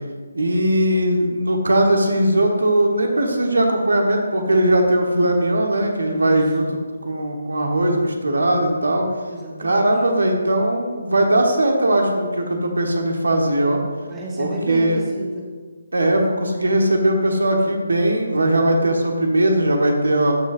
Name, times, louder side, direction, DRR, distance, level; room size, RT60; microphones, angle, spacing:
voice 1, 0.3-9.0 9.6-13.8 14.4-15.0 15.9-20.3, right 1 dB, 85° right, 2 dB, 1.2 m, -19 dB
voice 2, 6.1-6.7 9.3-9.9 14.1-15.5, right 1 dB, 15° right, -4 dB, 1.1 m, -32 dB
12.5 x 4.8 x 2.6 m, 1.5 s
figure-of-eight pair, 155°, 0 cm